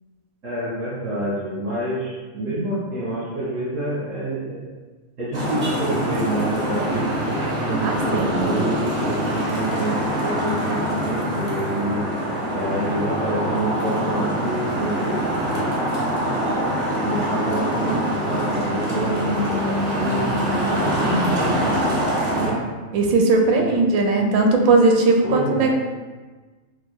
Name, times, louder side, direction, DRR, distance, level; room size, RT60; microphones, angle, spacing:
voice 1, 0.4-4.6 5.2-7.1 7.6-10.8 11.0-12.0 12.5-15.6 17.0-20.3 22.3-22.6 23.6-23.8 24.1-24.2 25.2-25.7, right 1 dB, 65° right, -12 dB, 1.9 m, -27 dB
Traffic noise roadway noise, 5.3-22.5, equal, 35° right, 0.9 m, -24 dB
voice 2, 7.8-8.4 21.0-21.3 22.9-25.7, right 3 dB, 85° right, 2 dB, 1.0 m, -18 dB
5.5 x 2.5 x 2.3 m, 1.3 s
omnidirectional pair, 1.5 m